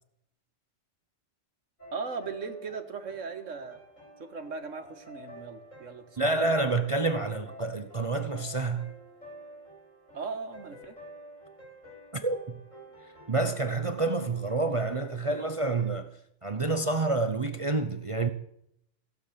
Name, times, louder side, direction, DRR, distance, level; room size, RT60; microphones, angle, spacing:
sound 1, 1.8-15.8, equal, 75° left, 6.3 m, -50 dB
voice 1, 1.9-3.8 4.2-6.6 10.1-11.0, right 5 dB, 75° right, 1.9 m, -38 dB
voice 2, 6.2-8.9 12.2-12.6 13.0-16.1 16.4-18.3, right 3 dB, 30° right, 0.8 m, -28 dB
16.5 x 7.7 x 8.4 m
omnidirectional pair, 1.3 m